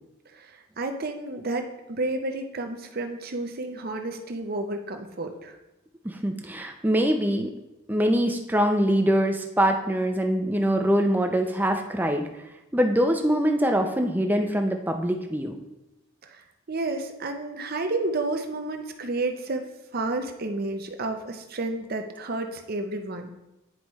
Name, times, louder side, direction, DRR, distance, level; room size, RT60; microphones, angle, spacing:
voice 1, 0.3-5.5 16.2-19.7 19.9-23.3, right 2 dB, 45° right, 5 dB, 0.7 m, -31 dB
voice 2, 6.0-7.5 7.9-12.3 12.7-15.6, equal, 10° right, 4 dB, 0.5 m, -23 dB
9.8 x 4.9 x 3.1 m, 0.95 s
head